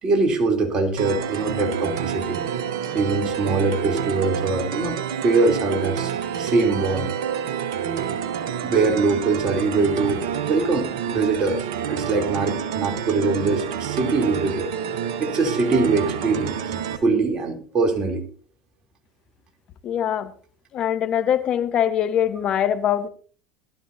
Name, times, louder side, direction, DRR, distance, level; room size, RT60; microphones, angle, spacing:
voice 1, 0.0-2.4 2.9-5.0 5.2-7.1 8.0-8.1 8.6-14.7 15.2-18.2, right 3 dB, 40° right, 3.5 m, -23 dB
sound 1, 1.0-17.0, right 8 dB, 70° right, 1.2 m, -28 dB
voice 2, 19.8-20.3 20.7-23.1, left 9 dB, 45° left, 1.4 m, -22 dB
20.0 x 12.5 x 2.8 m
hypercardioid pair, 75°, 2 cm